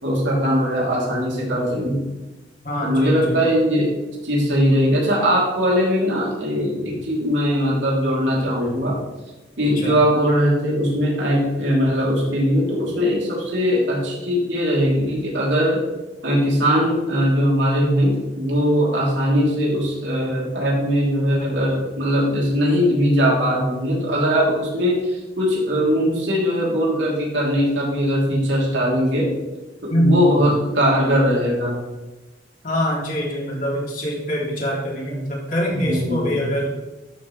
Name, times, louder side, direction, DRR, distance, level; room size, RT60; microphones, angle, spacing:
voice 1, 0.0-2.0 2.8-3.9 4.2-9.0 9.6-15.8 16.2-29.3 29.8-31.8 35.8-36.4, equal, 90° right, -4 dB, 3.0 m, -20 dB
voice 2, 2.6-3.4 9.8-10.0 29.9-30.5 32.6-36.7, equal, 50° left, -3 dB, 2.7 m, -24 dB
12.5 x 6.2 x 3.2 m, 1.1 s
head